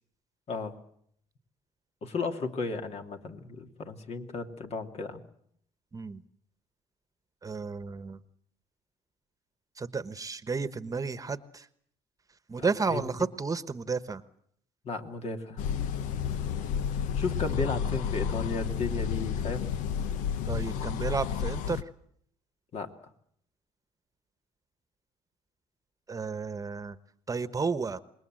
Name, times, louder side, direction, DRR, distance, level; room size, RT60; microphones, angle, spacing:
voice 1, 0.5-0.8 2.0-5.2 12.6-13.1 14.8-15.6 17.1-19.7 22.7-22.9, left 3 dB, 55° left, 5 dB, 2.8 m, -34 dB
voice 2, 7.4-8.2 9.8-11.7 12.5-14.2 20.5-21.8 26.1-27.0 27.3-28.0, right 4 dB, 25° right, 13 dB, 1.2 m, -32 dB
sound 1, 15.6-21.8, left 8 dB, 80° left, 1.0 m, -31 dB
26.5 x 21.0 x 7.7 m, 0.67 s
supercardioid pair, 85°, 13 cm